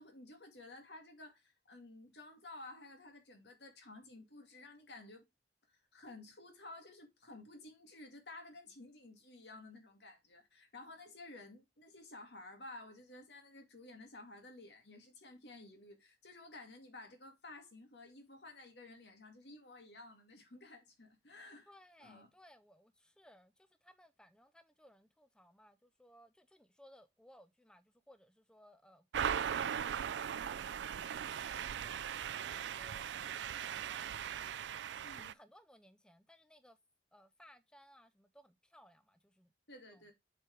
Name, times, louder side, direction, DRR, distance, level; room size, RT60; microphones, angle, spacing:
voice 1, 0.0-5.2 5.7-21.7 22.0-22.3 35.0-35.4 39.7-40.1, left 2 dB, 75° left, 2.2 m, -53 dB
voice 2, 21.7-34.5 35.1-36.8 37.1-39.5 39.9-40.1, equal, 5° left, 0.5 m, -63 dB
sound 1, 29.1-35.3, right 8 dB, 90° right, 0.4 m, -39 dB
7.9 x 4.6 x 3.4 m
head